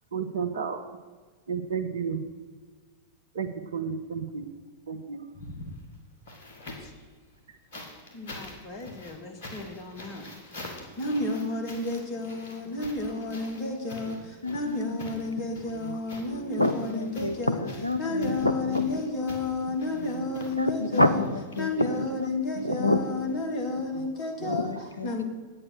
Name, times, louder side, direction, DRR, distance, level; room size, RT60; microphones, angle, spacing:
voice 1, 0.1-0.8 1.5-2.2 3.3-4.4 4.9-5.2 14.5-14.6 15.7-15.9 16.2-16.6 20.0-20.3, right 6 dB, 65° right, 8 dB, 0.9 m, -33 dB
sound 1, 5.3-7.0 7.7-22.2 23.4-23.5, left 1 dB, 55° left, 2.2 m, -45 dB
voice 2, 8.1-10.2 11.0-17.6 18.0-21.2 21.6-24.7 25.0-25.2, left 2 dB, 40° left, 3 dB, 2.0 m, -32 dB
voice 3, 14.4-15.5 16.6-19.0 20.6-22.3 22.5-23.4 24.5-25.1, left 2 dB, 85° left, 9 dB, 0.7 m, -28 dB
8.8 x 8.7 x 6.5 m, 1.4 s
figure-of-eight pair, 90°, 0 cm